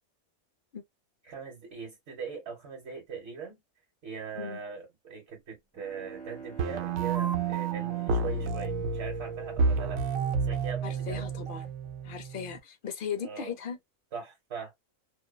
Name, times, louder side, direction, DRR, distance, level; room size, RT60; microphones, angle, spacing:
voice 1, 1.2-3.6 4.0-10.0 10.4-11.3 13.2-13.5 14.1-14.7, right 6 dB, 60° right, 1.3 m, -41 dB
Bowed string instrument, 5.5-10.3, right 5 dB, 5° left, 1.0 m, -47 dB
sound 1, 6.6-12.6, right 4 dB, 85° right, 1.0 m, -30 dB
voice 2, 10.8-11.7 12.0-13.8, left 7 dB, 50° left, 0.7 m, -37 dB
2.6 x 2.1 x 2.3 m
omnidirectional pair, 1.4 m